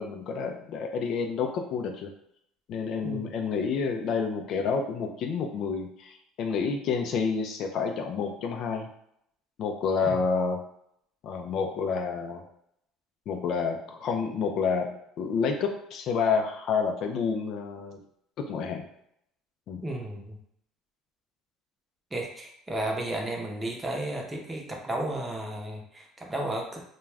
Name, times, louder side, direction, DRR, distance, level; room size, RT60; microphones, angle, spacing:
voice 1, 0.0-2.1 2.7-8.9 9.6-10.6 11.2-12.4 13.3-18.0 18.4-18.8 19.7-19.8, left 5 dB, 60° left, 4 dB, 0.4 m, -29 dB
voice 2, 19.8-20.4 22.1-26.8, right 1 dB, 15° right, 0 dB, 0.7 m, -33 dB
2.3 x 2.2 x 3.3 m, 0.73 s
supercardioid pair, 90°, 0 cm